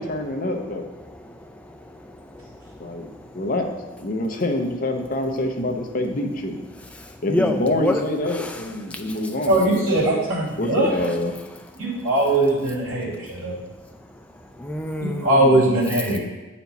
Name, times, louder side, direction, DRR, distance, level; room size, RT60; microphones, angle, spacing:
voice 1, 0.0-0.9 2.8-3.1 3.3-3.7 4.0-6.6 7.2-9.8 10.6-11.3 16.1-16.2, left 1 dB, 40° left, 4 dB, 0.6 m, -26 dB
voice 2, 1.0-3.4 6.7-8.0 8.3-9.3 10.6-10.9 14.5-15.5, left 1 dB, 5° left, 3 dB, 0.4 m, -30 dB
voice 3, 9.5-10.9 11.8-13.6 15.0-16.2, right 1 dB, 85° right, -6 dB, 2.2 m, -20 dB
8.2 x 4.3 x 4.0 m, 1.2 s
head